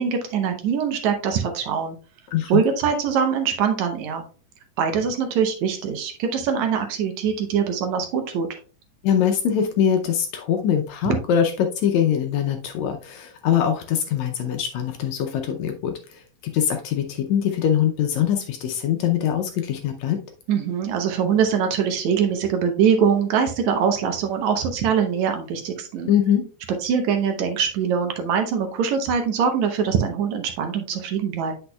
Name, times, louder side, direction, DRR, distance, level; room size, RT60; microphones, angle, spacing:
voice 1, 0.0-2.0 2.5-4.2 4.8-8.5 20.5-26.1 26.8-31.5, right 7 dB, 70° right, 5 dB, 2.0 m, -23 dB
voice 2, 2.3-2.7 9.0-20.2 26.1-26.5, left 9 dB, 75° left, 5 dB, 1.8 m, -23 dB
8.2 x 6.0 x 2.3 m, 0.36 s
omnidirectional pair, 3.6 m